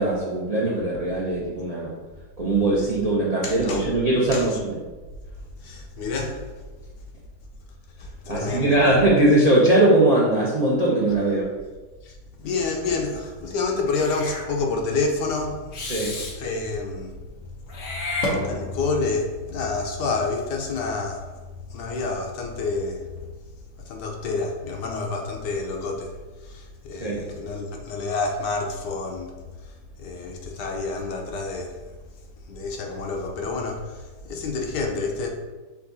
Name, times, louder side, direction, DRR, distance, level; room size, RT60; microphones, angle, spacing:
voice 1, 0.0-1.9 2.4-4.8 8.3-11.5 15.9-16.1 27.0-27.2, right 1 dB, 65° right, -5 dB, 0.3 m, -20 dB
voice 2, 3.4-3.9 4.3-4.6 5.6-6.5 8.0-9.0 12.0-15.9 16.3-17.6 17.8-23.3 23.8-31.9 32.5-35.3, left 3 dB, 90° left, 1 dB, 1.3 m, -29 dB
Meow / Hiss, 13.9-14.5 15.7-16.4 17.7-18.9, left 1 dB, 55° left, 1.1 m, -30 dB
5.6 x 2.4 x 3.9 m, 1.3 s
omnidirectional pair, 1.8 m